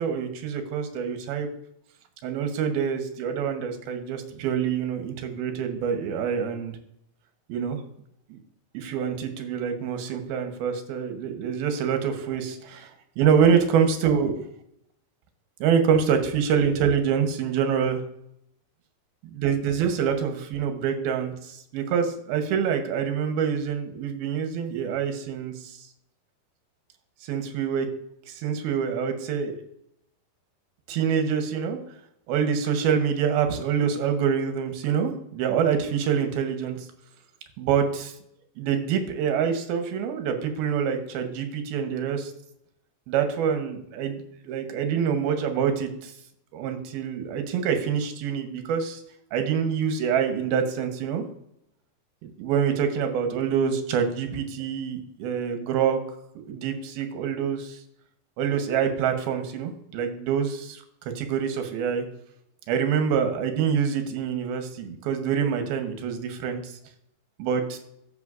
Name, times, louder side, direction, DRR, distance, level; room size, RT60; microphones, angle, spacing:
voice 1, 0.0-1.5 2.2-6.7 7.5-7.8 8.3-8.4 8.7-14.4 15.6-18.0 19.3-25.9 27.2-27.9 28.3-29.6 30.9-31.8 32.3-36.8 37.6-38.1 38.6-42.3 43.1-46.1 46.5-49.0 49.3-51.3 52.2-56.0 56.5-57.8 58.4-60.8 61.2-62.0 62.7-66.7 67.4-67.8, right 7 dB, 75° right, 6 dB, 2.7 m, -26 dB
15.5 x 5.3 x 2.4 m, 0.75 s
omnidirectional pair, 4.5 m